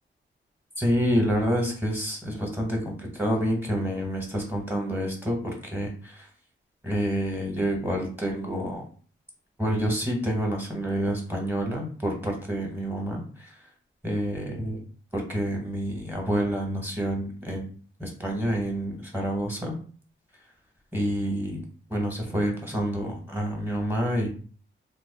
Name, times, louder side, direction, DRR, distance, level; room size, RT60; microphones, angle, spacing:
voice 1, 0.8-6.3 6.8-8.8 9.6-13.5 14.0-14.8 15.1-17.7 18.0-19.7 20.9-21.6 21.9-24.3, equal, 10° right, 0 dB, 0.9 m, -28 dB
2.9 x 2.3 x 3.8 m, 0.42 s
wide cardioid pair, 130°, 20 cm